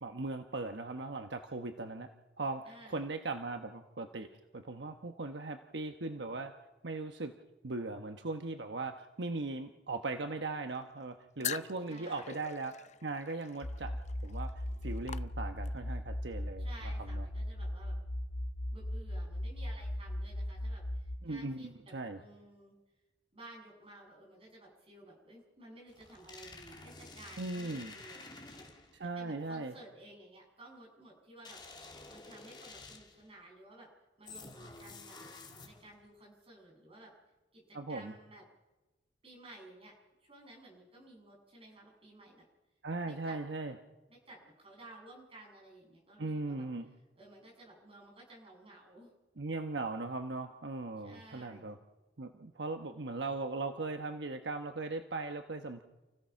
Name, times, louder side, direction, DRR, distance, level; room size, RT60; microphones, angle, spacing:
voice 1, 0.0-2.1 2.4-6.5 6.8-7.4 7.6-12.7 13.0-14.0 14.2-16.7 17.1-17.2 21.2-22.2 27.4-27.9 28.9-29.7 37.7-38.1 42.8-43.7 46.2-46.9 49.4-51.8 52.2-55.8, right 3 dB, 75° right, 6 dB, 1.1 m, -39 dB
voice 2, 2.7-3.1 11.9-12.4 16.6-17.9 18.7-22.8 23.3-28.7 29.2-31.6 32.1-33.9 34.2-35.2 35.6-37.1 37.5-38.4 39.2-40.0 40.2-42.4 43.0-43.4 44.1-46.7 47.2-49.1 51.0-51.7, right 1 dB, 35° right, -1 dB, 7.5 m, -55 dB
sound 1, 11.4-15.9, left 9 dB, 40° left, 0.6 m, -44 dB
sound 2, 13.6-21.2, left 1 dB, 80° left, 1.7 m, -38 dB
sound 3, 25.9-29.0 31.4-33.3 34.3-36.0, left 3 dB, 25° left, 2.5 m, -51 dB
29.0 x 16.5 x 5.9 m, 1.1 s
head